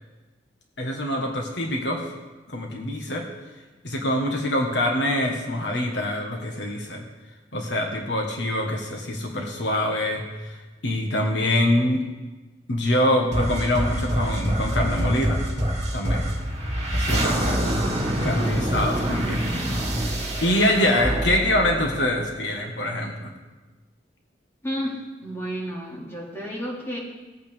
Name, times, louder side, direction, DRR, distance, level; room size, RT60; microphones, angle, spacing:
voice 1, 0.8-2.0 2.5-3.2 3.8-7.0 7.5-10.5 10.8-12.0 12.7-15.4 15.9-16.2 16.9-18.0 18.2-19.4 20.0-23.3, left 1 dB, 75° left, 1 dB, 1.5 m, -25 dB
sound 1, 13.3-22.6, right 1 dB, 40° right, 2.2 m, -26 dB
voice 2, 24.6-27.0, equal, 15° left, -4 dB, 2.4 m, -32 dB
17.0 x 8.6 x 3.6 m, 1.2 s
head